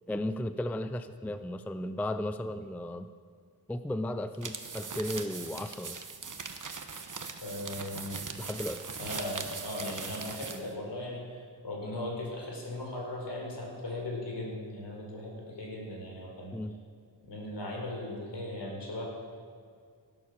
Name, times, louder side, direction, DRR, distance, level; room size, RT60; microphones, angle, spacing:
voice 1, 0.1-3.1 3.7-6.0 8.4-8.9 16.5-16.7, left 1 dB, 5° left, 11 dB, 0.4 m, -35 dB
sound 1, 4.3-10.7, right 5 dB, 45° right, 1.1 m, -40 dB
voice 2, 7.4-8.2 9.0-16.5 17.3-19.0, left 1 dB, 70° left, -1 dB, 4.4 m, -38 dB
17.0 x 9.5 x 6.5 m, 2.1 s
wide cardioid pair, 120°, 44 cm